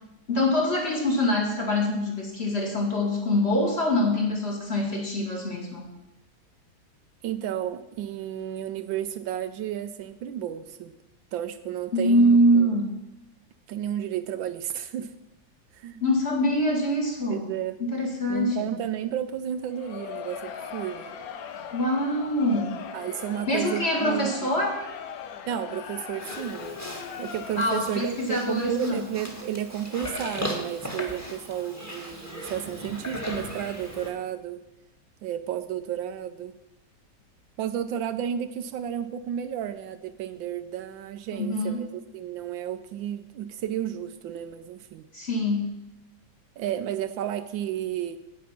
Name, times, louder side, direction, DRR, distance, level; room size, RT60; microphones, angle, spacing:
voice 1, 0.3-5.9 11.9-12.9 16.0-17.4 17.8-18.6 21.7-22.7 23.5-24.8 27.6-29.0 41.3-41.8 45.1-45.7, left 1 dB, 30° left, -1 dB, 2.3 m, -24 dB
voice 2, 7.2-11.0 11.3-12.7 13.7-15.1 15.7-16.0 17.3-17.8 18.3-21.1 22.9-24.5 25.5-26.8 27.2-34.6 35.2-36.5 37.6-45.1 46.6-48.2, right 10 dB, 75° right, 11 dB, 1.3 m, -32 dB
Crowd, 19.6-28.1, left 7 dB, 65° left, 1.0 m, -39 dB
Livestock farm animals working animals, 26.2-34.1, equal, 10° left, 1.7 m, -37 dB
9.4 x 8.5 x 5.8 m, 0.97 s
omnidirectional pair, 2.2 m